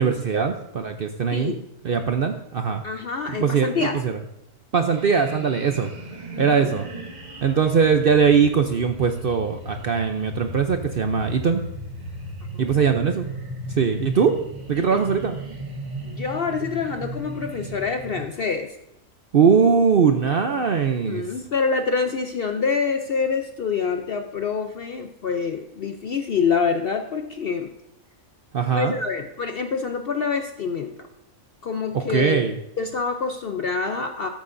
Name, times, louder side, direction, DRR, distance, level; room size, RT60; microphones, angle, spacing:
voice 1, 0.0-1.5 1.8-2.8 3.4-4.2 4.7-5.9 6.4-6.9 7.4-11.6 12.6-13.3 13.8-14.3 14.7-15.4 19.3-21.2 28.5-28.9 31.9-32.5, right 6 dB, 55° right, 6 dB, 0.6 m, -21 dB
voice 2, 1.3-1.7 2.8-4.0 6.3-6.7 12.4-12.8 14.9-15.0 16.0-18.7 21.1-27.7 28.7-30.9 31.6-32.4 32.8-34.3, left 5 dB, 60° left, 6 dB, 0.6 m, -26 dB
sound 1, 4.8-18.3, right 1 dB, 30° right, 1.4 m, -36 dB
14.0 x 8.8 x 2.6 m, 0.85 s
omnidirectional pair, 1.5 m